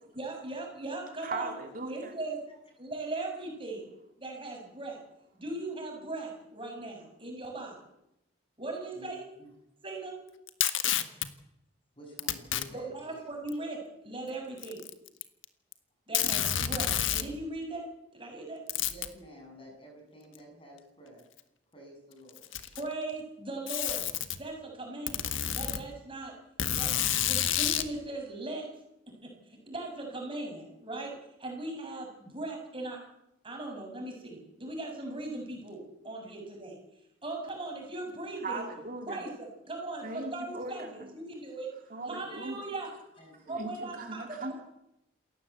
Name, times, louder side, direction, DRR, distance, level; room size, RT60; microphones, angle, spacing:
voice 1, 0.1-1.5 1.9-2.4 2.8-3.9 4.2-5.0 5.3-7.8 8.6-9.3 9.8-10.2 12.7-14.8 16.1-18.6 22.7-24.1 24.3-25.3 25.5-26.3 26.7-28.7 29.2-33.0 33.4-36.8 37.2-38.7 39.1-40.0 40.3-41.7 42.0-42.9 43.5-44.5, right 2 dB, 25° right, 1 dB, 7.1 m, -39 dB
voice 2, 1.2-2.1 38.4-39.2 40.0-40.9 41.9-42.6 43.5-44.5, right 3 dB, 45° right, 3 dB, 2.5 m, -38 dB
Packing tape duct tape, 10.5-11.3 12.2-12.7 13.5-13.6 14.6-15.4 15.7-15.8 16.1-17.3 18.7-19.1 20.3-20.4 21.4-21.5 22.3-22.9 23.7-24.4 25.1-25.8 26.6-27.9, left 10 dB, 85° left, 1.6 m, -29 dB
voice 3, 12.0-13.2 18.9-21.2 21.7-22.5 43.2-43.9, equal, 25° left, 3 dB, 7.6 m, -51 dB
28.0 x 14.5 x 8.2 m, 0.85 s
head